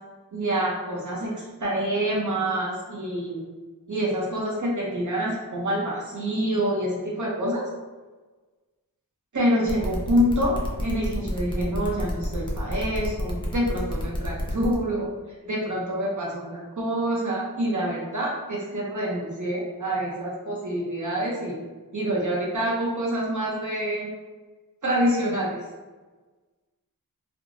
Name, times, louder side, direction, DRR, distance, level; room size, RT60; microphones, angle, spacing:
voice 1, 0.3-3.4 3.9-7.6 9.3-15.1 15.4-21.5 21.9-24.1 24.8-25.6, equal, 55° right, -4 dB, 0.7 m, -26 dB
sound 1, 9.7-14.7, left 1 dB, 15° left, 0.6 m, -31 dB
2.4 x 2.1 x 3.0 m, 1.3 s
wide cardioid pair, 60°, 36 cm